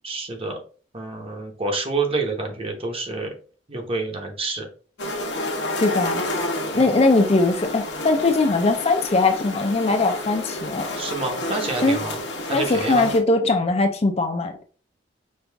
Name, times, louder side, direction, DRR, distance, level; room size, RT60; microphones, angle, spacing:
voice 1, 0.0-0.6 0.9-3.3 3.7-4.7 6.7-6.9 11.0-12.2 12.4-13.1, right 3 dB, 30° right, 1.0 m, -28 dB
sound 1, 5.0-13.2, left 1 dB, 70° left, 1.0 m, -30 dB
voice 2, 5.8-6.2 6.7-10.9 11.8-12.0 12.5-14.6, left 3 dB, 35° left, 0.5 m, -20 dB
5.3 x 2.4 x 3.4 m
head